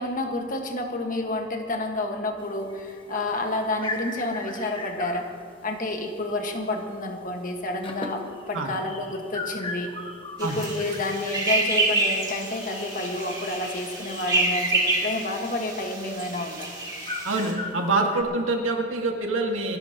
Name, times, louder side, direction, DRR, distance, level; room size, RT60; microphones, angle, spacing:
voice 1, 0.0-5.3 5.6-8.2 8.5-9.9 10.4-16.7, left 2 dB, 40° left, 3 dB, 1.5 m, -29 dB
sound 1, 2.4-6.8 7.0-7.3 7.6-18.2, left 2 dB, 25° left, 1.2 m, -39 dB
sound 2, 10.4-17.5, right 2 dB, 20° right, 2.3 m, -28 dB
voice 2, 17.2-19.8, right 2 dB, 90° right, 2 dB, 1.9 m, -25 dB
27.5 x 12.0 x 2.9 m, 2.1 s
head